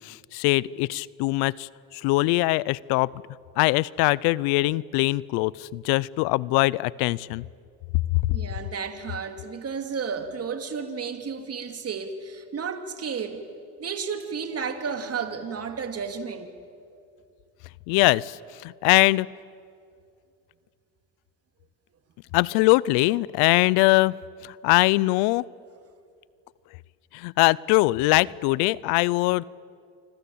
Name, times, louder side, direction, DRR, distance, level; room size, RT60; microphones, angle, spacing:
voice 1, 0.0-3.1 3.6-7.4 17.9-18.4 18.6-19.3 22.3-24.2 24.6-25.4 27.1-29.4, left 21 dB, 85° left, 23 dB, 0.6 m, -22 dB
voice 2, 8.3-13.4 13.8-16.5, right 6 dB, 40° right, 7 dB, 2.9 m, -32 dB
26.5 x 25.5 x 8.6 m, 2.3 s
supercardioid pair, 95°, 37 cm